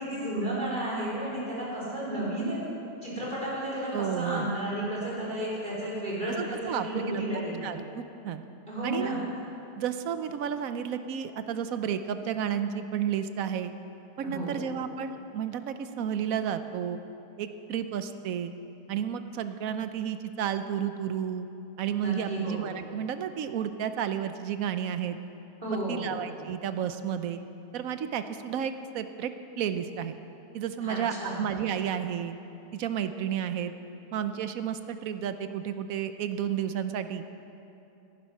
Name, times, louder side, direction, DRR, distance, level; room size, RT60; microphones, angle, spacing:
voice 1, 0.0-2.6 3.0-7.7 8.7-9.2 14.2-14.6 21.9-22.7 25.6-26.1 30.8-31.4, right 1 dB, 30° right, -7 dB, 4.4 m, -32 dB
voice 2, 3.9-4.5 6.4-7.2 7.6-8.4 8.8-9.2 9.8-13.7 14.2-17.0 17.4-18.5 18.9-21.5 21.8-25.2 25.7-27.4 27.7-29.3 29.6-30.2 30.5-32.4 32.7-33.7 34.1-37.2, right 8 dB, 65° right, 10 dB, 1.0 m, -32 dB
17.5 x 10.5 x 5.6 m, 2.8 s
omnidirectional pair, 1.8 m